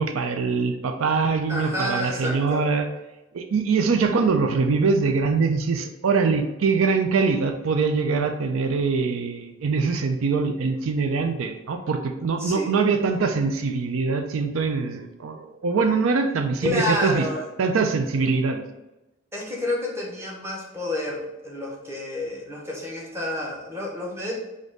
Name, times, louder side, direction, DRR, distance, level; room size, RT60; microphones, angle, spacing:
voice 1, 0.0-2.9 3.3-17.3 17.6-18.6, right 4 dB, 90° right, 5 dB, 0.5 m, -23 dB
voice 2, 1.5-2.7 12.4-12.7 16.6-17.5 19.3-24.3, left 1 dB, 15° right, -3 dB, 0.9 m, -29 dB
5.2 x 2.6 x 3.8 m, 0.99 s
head